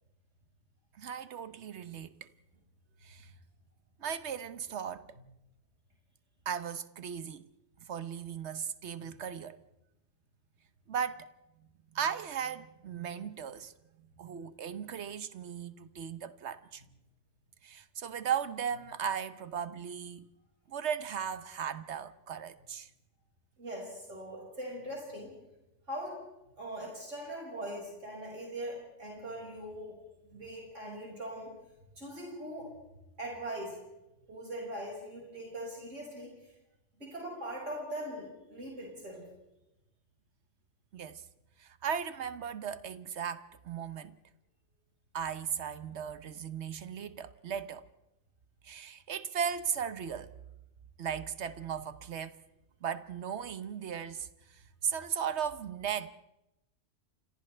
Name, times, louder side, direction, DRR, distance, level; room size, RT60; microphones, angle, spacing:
voice 1, 1.0-2.3 3.0-3.3 4.0-5.1 6.4-7.5 7.9-9.6 10.9-11.3 11.9-13.7 14.2-16.8 17.6-20.3 20.7-22.9 40.9-41.2 41.6-44.1 45.1-47.8 48.6-50.3 51.0-52.4 52.8-56.1, right 8 dB, 70° right, 1.2 m, -37 dB
voice 2, 23.6-25.3 25.9-26.2 26.6-30.0 30.2-31.5 32.0-32.7 33.2-33.8 34.3-36.3 37.0-39.3 51.8-51.9, right 1 dB, 85° right, 6.2 m, -41 dB
30.0 x 26.0 x 3.4 m
omnidirectional pair, 1.2 m